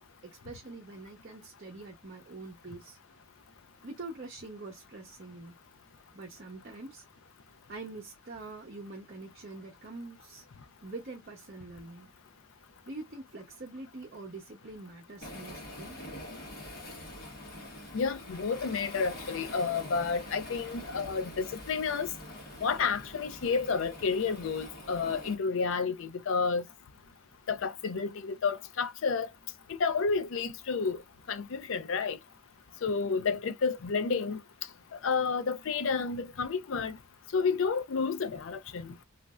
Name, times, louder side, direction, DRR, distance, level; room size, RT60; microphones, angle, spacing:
voice 1, 0.2-3.0 3.8-5.6 6.1-7.0 7.7-10.4 10.8-12.1 12.9-16.0, right 3 dB, 45° right, 0.7 m, -44 dB
Waves surf, 15.2-25.3, left 1 dB, 45° left, 1.2 m, -45 dB
voice 2, 17.9-22.1 22.6-26.6 27.5-29.3 29.7-31.0 31.3-32.2 32.8-34.4 34.9-37.0 37.3-39.0, left 5 dB, 65° left, 0.4 m, -30 dB
3.1 x 2.5 x 2.3 m
head